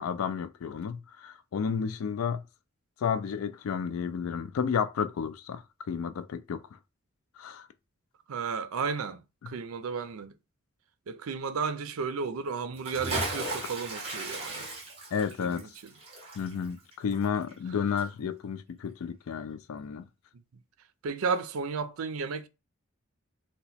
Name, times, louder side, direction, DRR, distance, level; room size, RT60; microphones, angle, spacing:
voice 1, 0.0-2.4 3.0-6.6 7.4-7.7 15.1-15.7 16.4-20.0, left 7 dB, 80° left, 0.3 m, -32 dB
voice 2, 8.3-10.3 11.1-14.7 15.4-15.9 21.0-22.5, right 5 dB, 85° right, 0.5 m, -33 dB
Bathtub (filling or washing) / Splash splatter, 12.7-17.7 18.0-18.1, right 2 dB, 25° right, 1.2 m, -36 dB
2.9 x 2.2 x 4.1 m
head